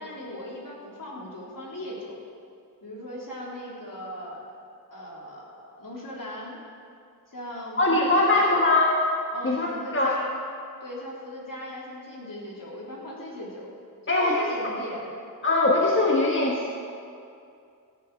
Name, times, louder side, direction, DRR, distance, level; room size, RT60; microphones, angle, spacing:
voice 1, 0.0-2.2 2.8-4.4 4.9-6.6 7.3-8.7 9.3-10.4 10.8-13.7 14.0-15.2, left 1 dB, 60° left, -4 dB, 3.7 m, -38 dB
voice 2, 7.8-8.9 9.4-10.1 14.1-14.4 15.4-16.8, left 2 dB, 35° left, -2 dB, 1.5 m, -21 dB
15.0 x 7.2 x 8.2 m, 2.4 s
wide cardioid pair, 65°, 37 cm